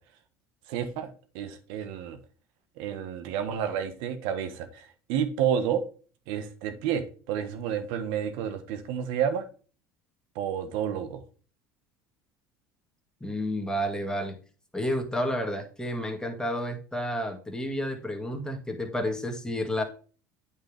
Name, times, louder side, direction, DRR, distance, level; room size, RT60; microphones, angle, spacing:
voice 1, 0.7-2.2 2.8-5.8 6.3-9.4 10.3-11.2, right 9 dB, 70° right, 1.4 m, -30 dB
voice 2, 13.2-14.4 14.7-19.8, equal, 5° left, 2.2 m, -30 dB
8.9 x 5.4 x 3.4 m
hypercardioid pair, 80°, 10 cm